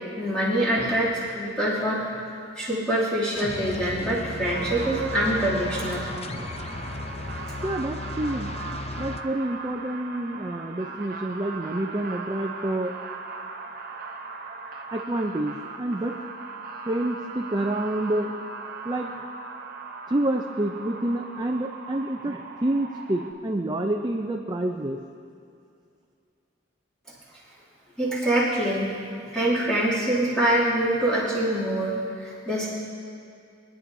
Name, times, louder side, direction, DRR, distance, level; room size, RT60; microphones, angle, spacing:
voice 1, 0.2-2.0 2.6-6.1 28.0-28.9 29.3-32.7, right 1 dB, 5° left, -11 dB, 2.7 m, -25 dB
sound 1, 3.3-9.2, left 2 dB, 35° left, 0.5 m, -35 dB
sound 2, 4.4-23.3, right 3 dB, 50° right, 0.8 m, -39 dB
voice 2, 7.6-8.5 9.0-12.9 14.9-16.2 16.9-18.3 18.8-19.1 20.1-25.0, right 1 dB, 25° right, 2 dB, 0.5 m, -28 dB
24.0 x 9.8 x 2.7 m, 2.5 s
head